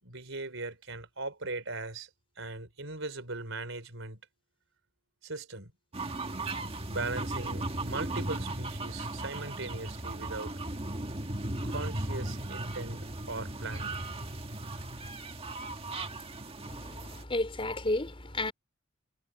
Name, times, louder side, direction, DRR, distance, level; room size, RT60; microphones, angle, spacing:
voice 1, 0.0-2.1 2.4-4.2 5.2-5.7 6.9-10.6 11.6-14.0, right 3 dB, 65° right, 5.1 m, -39 dB
sound 1, 5.9-17.2, right 2 dB, 30° right, 1.6 m, -37 dB
voice 2, 16.7-18.5, left 2 dB, 25° left, 4.3 m, -32 dB
head